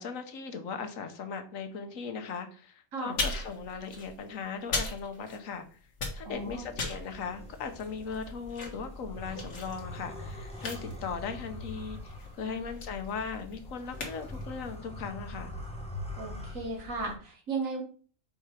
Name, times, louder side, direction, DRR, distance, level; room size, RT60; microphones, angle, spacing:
voice 1, 0.0-5.8 6.1-15.6, left 5 dB, 85° left, 8 dB, 1.3 m, -38 dB
sound 1, 3.1-5.6 5.9-14.8, left 3 dB, 65° left, 1.7 m, -39 dB
voice 2, 6.2-6.7 12.5-12.7 16.2-17.8, right 3 dB, 85° right, 0 dB, 1.9 m, -36 dB
sound 2, 6.3-17.1, left 1 dB, 5° left, 0.9 m, -43 dB
5.3 x 4.3 x 4.7 m, 0.42 s
omnidirectional pair, 1.3 m